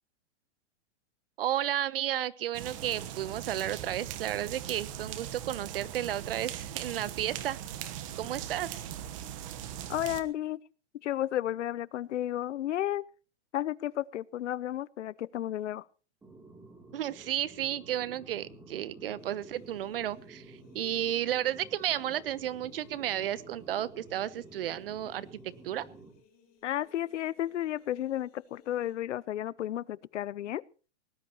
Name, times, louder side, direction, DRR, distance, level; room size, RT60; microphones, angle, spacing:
voice 1, 1.4-7.6 8.2-8.8 16.9-25.9, right 11 dB, 55° right, 1.0 m, -33 dB
sound 1, 2.5-10.2, right 10 dB, 30° right, 1.2 m, -40 dB
voice 2, 9.9-10.6 11.0-13.0 13.5-15.8 26.6-30.6, left 12 dB, 85° left, 0.8 m, -33 dB
sound 2, 16.2-26.1, right 2 dB, 5° right, 2.9 m, -51 dB
sound 3, 19.2-29.0, left 5 dB, 25° left, 7.7 m, -64 dB
20.0 x 19.0 x 3.0 m
hypercardioid pair, 175°, 35 cm